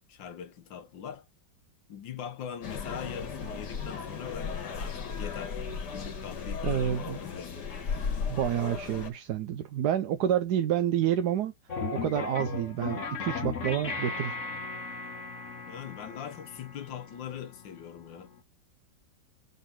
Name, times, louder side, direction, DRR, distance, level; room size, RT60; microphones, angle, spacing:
voice 1, 0.1-1.3 1.9-5.6 5.9-7.6 15.7-18.3, left 8 dB, 80° left, 1.8 m, -41 dB
sound 1, 2.6-9.1, left 6 dB, 65° left, 2.1 m, -35 dB
voice 2, 6.6-7.2 8.3-11.5 11.9-14.4, right 10 dB, 65° right, 1.2 m, -28 dB
sound 2, 11.7-18.4, left 4 dB, 45° left, 1.6 m, -37 dB
6.9 x 4.1 x 5.8 m
omnidirectional pair, 2.0 m